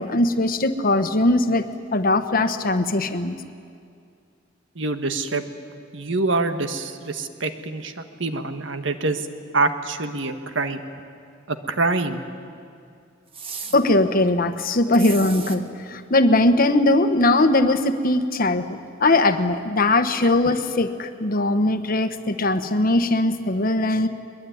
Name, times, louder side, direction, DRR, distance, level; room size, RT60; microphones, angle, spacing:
voice 1, 0.0-1.6 1.9-3.4 13.7-24.1, left 2 dB, 50° left, 9 dB, 1.2 m, -20 dB
voice 2, 4.7-5.4 5.9-7.9 8.2-9.2 9.5-10.8 11.5-12.2 20.2-20.3, right 3 dB, 70° right, 8 dB, 1.5 m, -25 dB
sound 1, 13.3-13.8 14.9-15.6, right 5 dB, 30° right, 1.5 m, -35 dB
23.0 x 22.0 x 9.5 m, 2.4 s
head